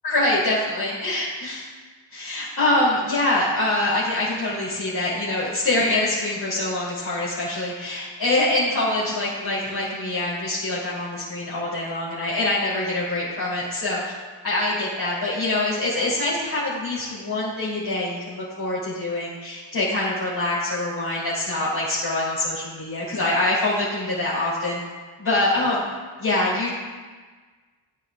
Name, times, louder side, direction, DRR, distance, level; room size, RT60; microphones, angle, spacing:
voice 1, 0.0-1.7 2.1-14.0 14.4-24.8 25.2-25.9 26.2-26.7, left 2 dB, 55° left, -10 dB, 3.4 m, -24 dB
14.5 x 9.4 x 2.5 m, 1.4 s
wide cardioid pair, 95°, 47 cm